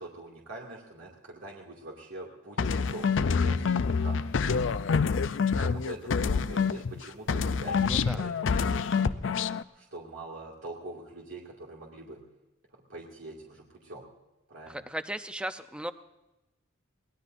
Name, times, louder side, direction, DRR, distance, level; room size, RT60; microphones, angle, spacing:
voice 1, 0.0-4.3 5.6-9.2 9.7-12.2 12.7-14.1 14.5-14.9, right 2 dB, 70° right, -3 dB, 2.3 m, -44 dB
sound 1, 2.6-7.0 7.3-9.6, left 5 dB, 60° left, 0.5 m, -27 dB
voice 2, 7.8-8.2 14.7-15.9, right 1 dB, 5° right, 9 dB, 0.6 m, -36 dB
23.0 x 18.5 x 2.6 m, 0.99 s
head